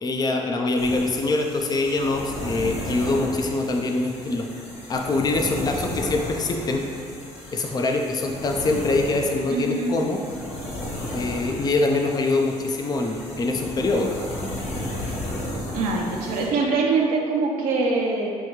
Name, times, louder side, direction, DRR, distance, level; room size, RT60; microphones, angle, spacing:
voice 1, 0.0-4.5 4.9-6.8 7.5-10.2 11.1-14.1, left 2 dB, 30° left, 3 dB, 0.4 m, -24 dB
sound 1, 0.8-16.5, left 1 dB, 50° left, 1.0 m, -34 dB
voice 2, 9.5-10.0 15.6-18.4, right 3 dB, 75° right, -1 dB, 0.6 m, -24 dB
6.2 x 2.3 x 3.0 m, 2.2 s
supercardioid pair, 60°, 14 cm